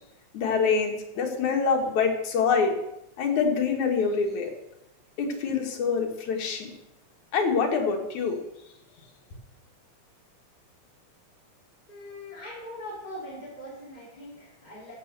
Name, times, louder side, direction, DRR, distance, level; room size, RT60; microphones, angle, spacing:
voice 1, 0.3-2.7 3.2-4.5 5.2-6.7 7.3-8.4, left 5 dB, 80° left, 3 dB, 3.2 m, -25 dB
voice 2, 11.9-14.9, left 1 dB, 15° left, -7 dB, 4.6 m, -41 dB
14.5 x 7.7 x 6.7 m, 0.89 s
omnidirectional pair, 3.3 m